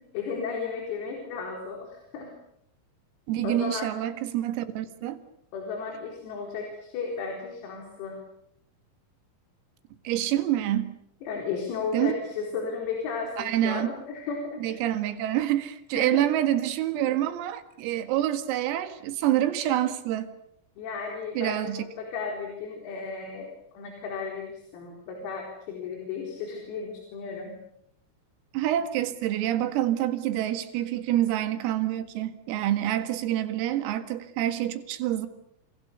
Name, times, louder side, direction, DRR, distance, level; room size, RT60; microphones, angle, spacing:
voice 1, 0.1-2.3 3.4-3.9 5.5-8.2 11.2-14.8 15.9-16.2 20.8-23.5 23.7-27.5, left 5 dB, 85° left, 1 dB, 6.9 m, -34 dB
voice 2, 3.3-5.2 10.1-10.9 11.9-12.1 13.4-13.9 14.6-20.3 21.4-21.9 28.5-35.3, right 12 dB, 85° right, 10 dB, 4.6 m, -27 dB
29.0 x 28.5 x 6.9 m, 0.75 s
omnidirectional pair, 6.0 m